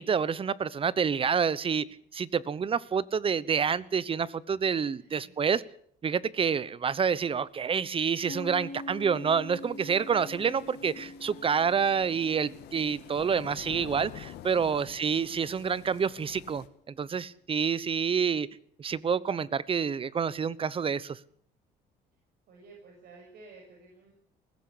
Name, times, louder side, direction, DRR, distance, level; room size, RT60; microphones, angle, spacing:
voice 1, 0.0-1.9 2.1-5.6 6.0-16.6 17.0-18.5 18.8-21.2, right 6 dB, 30° right, 20 dB, 0.9 m, -28 dB
voice 2, 5.0-5.3 14.6-14.9 22.5-24.1, right 3 dB, 70° right, 0 dB, 6.5 m, -53 dB
sound 1, 7.9-16.7, left 11 dB, 80° left, 2.0 m, -49 dB
Piano, 8.3-15.5, left 2 dB, 40° left, 2.6 m, -45 dB
19.5 x 16.0 x 8.5 m, 0.63 s
cardioid pair, 110°, 17 cm